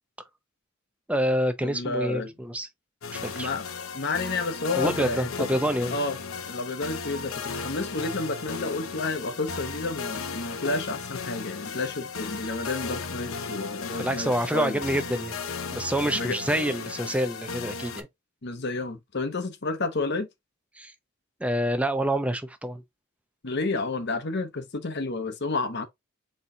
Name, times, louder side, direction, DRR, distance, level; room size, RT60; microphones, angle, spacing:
voice 1, 1.1-2.7 3.1-3.5 4.7-5.9 13.9-15.4 15.7-18.1 20.8-20.9 21.4-22.8, equal, 5° right, 0.6 m, -27 dB
voice 2, 1.6-2.3 3.3-3.7 3.9-5.5 5.9-6.2 6.5-14.8 16.1-16.4 18.4-20.3 23.4-25.9, left 3 dB, 50° left, 0.9 m, -30 dB
sound 1, 3.0-18.0, left 5 dB, 80° left, 0.7 m, -35 dB
4.4 x 3.9 x 2.7 m
head